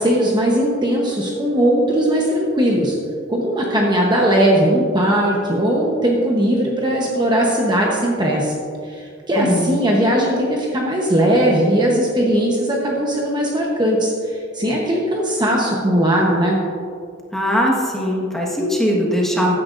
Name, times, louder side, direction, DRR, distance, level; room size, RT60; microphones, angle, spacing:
voice 1, 0.0-3.0 3.3-8.5 8.8-16.6, right 1 dB, 20° right, -2 dB, 1.0 m, -18 dB
voice 2, 9.4-9.8 17.3-19.6, equal, ahead, -4 dB, 1.4 m, -20 dB
14.5 x 10.0 x 2.6 m, 2.3 s
head